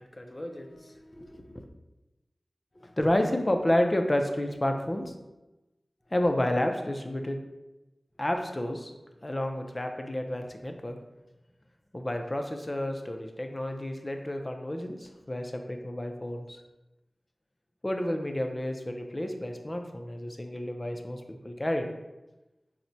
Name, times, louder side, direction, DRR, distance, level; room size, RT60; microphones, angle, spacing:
voice 1, 0.0-1.7 2.8-5.1 6.1-7.4 8.2-8.9 9.2-11.0 11.9-16.6 17.8-21.9, left 1 dB, 30° left, 4 dB, 0.4 m, -30 dB
4.2 x 2.1 x 2.6 m, 1.0 s
wide cardioid pair, 45°, 0 cm